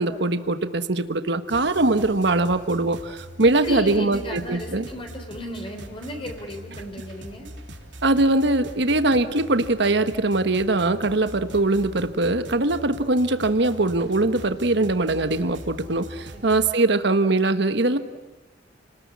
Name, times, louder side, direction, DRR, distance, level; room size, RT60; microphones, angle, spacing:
voice 1, 0.0-4.9 8.0-18.0, right 2 dB, 65° right, 10 dB, 1.4 m, -22 dB
sound 1, 1.5-16.7, equal, 85° right, 3.7 m, -42 dB
voice 2, 3.4-7.5 16.3-16.5, equal, 30° left, 3 dB, 3.8 m, -34 dB
30.0 x 20.0 x 9.7 m, 1.1 s
head